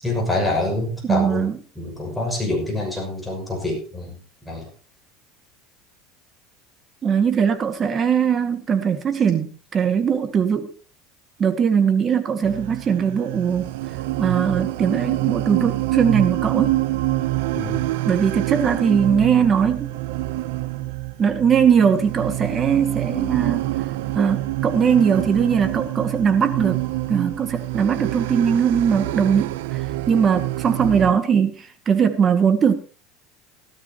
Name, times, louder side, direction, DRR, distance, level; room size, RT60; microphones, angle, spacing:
voice 1, 0.0-1.5 1.8-4.2 4.4-4.7 17.5-17.8, left 2 dB, 5° left, -1 dB, 6.2 m, -26 dB
voice 2, 1.0-1.6 7.0-10.7 11.4-13.7 14.2-16.8 18.1-19.9 21.2-23.6 24.1-26.8 27.1-32.7, right 7 dB, 30° right, 7 dB, 1.9 m, -20 dB
sound 1, 12.4-31.1, right 17 dB, 85° right, 0.6 m, -26 dB
17.0 x 13.0 x 2.9 m, 0.37 s
supercardioid pair, 130°, 0 cm